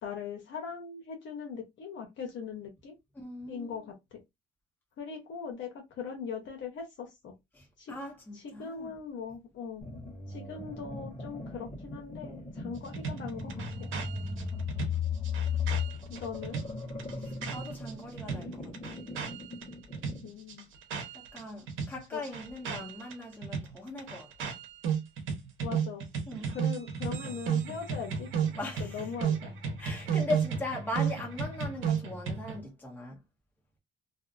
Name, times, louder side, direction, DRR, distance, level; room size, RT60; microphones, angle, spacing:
voice 1, 0.0-2.9 3.5-3.8 4.1-4.2 5.0-5.7 6.0-7.3 7.8-7.9 8.4-9.8 10.3-13.5 13.8-13.9 16.1-16.6 20.2-20.7 22.1-22.2 22.6-22.9 25.6-26.0 26.5-28.5 28.8-29.5, left 6 dB, 70° left, 0.9 m, -40 dB
voice 2, 3.1-3.9 7.5-8.9 17.2-18.9 21.1-24.5 26.3-26.6 28.6-29.1 29.8-33.2, left 2 dB, 10° left, 1.0 m, -39 dB
sound 1, 9.8-20.3, left 5 dB, 35° left, 1.2 m, -37 dB
sound 2, 12.9-17.9 18.2-21.4 21.7-32.6, right 7 dB, 80° right, 0.9 m, -34 dB
2.7 x 2.4 x 2.5 m
cardioid pair, 90°, 20 cm